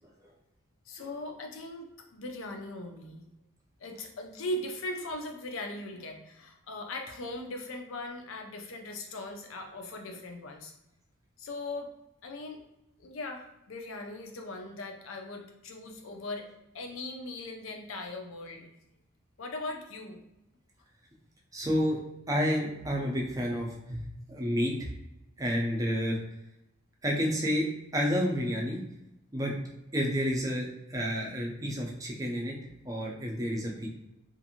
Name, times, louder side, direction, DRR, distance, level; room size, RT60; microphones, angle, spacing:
voice 1, 0.9-3.2 3.8-10.7 11.4-11.9 12.2-12.6 13.0-16.4 16.7-18.7 19.4-20.2, left 2 dB, 75° left, 3 dB, 0.5 m, -39 dB
voice 2, 21.5-22.0 22.3-24.0 24.3-24.9 25.4-26.2 27.0-27.7 27.9-28.8 29.3-29.5 29.9-32.5 32.8-33.9, equal, 15° right, -1 dB, 0.5 m, -30 dB
2.5 x 2.5 x 2.8 m, 0.88 s
head